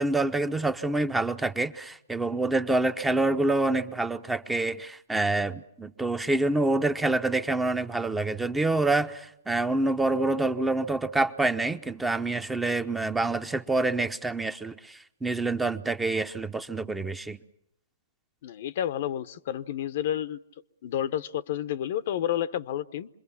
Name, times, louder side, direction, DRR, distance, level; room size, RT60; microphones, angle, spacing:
voice 1, 0.0-17.4, right 2 dB, 10° right, 10 dB, 0.8 m, -27 dB
voice 2, 18.4-20.4 20.8-23.1, left 11 dB, 55° left, 14 dB, 0.8 m, -30 dB
26.0 x 22.0 x 7.1 m, 0.82 s
hypercardioid pair, 120°, 0 cm